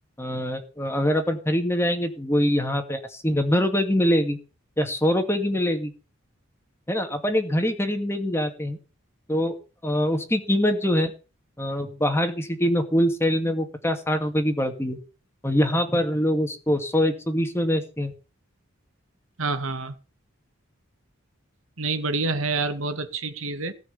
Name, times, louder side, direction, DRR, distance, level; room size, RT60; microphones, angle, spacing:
voice 1, 0.2-4.4 4.8-5.9 6.9-8.8 9.3-9.5 9.8-11.1 11.6-15.0 15.4-18.1, equal, 10° left, 6 dB, 2.2 m, -24 dB
voice 2, 19.4-19.9 21.8-23.7, right 3 dB, 75° right, 9 dB, 2.0 m, -27 dB
17.5 x 6.2 x 8.5 m, 0.34 s
head